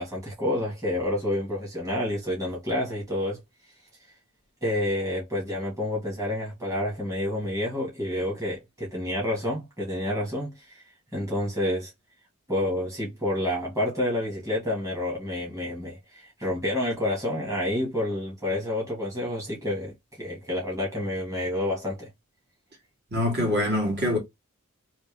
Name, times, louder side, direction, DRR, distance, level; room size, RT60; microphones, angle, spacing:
voice 1, 0.0-3.4 4.6-10.8 11.1-11.9 12.5-22.1, left 1 dB, 15° right, 1.6 m, -29 dB
voice 2, 23.1-24.2, left 1 dB, 50° right, 2.0 m, -24 dB
3.4 x 2.7 x 3.2 m
head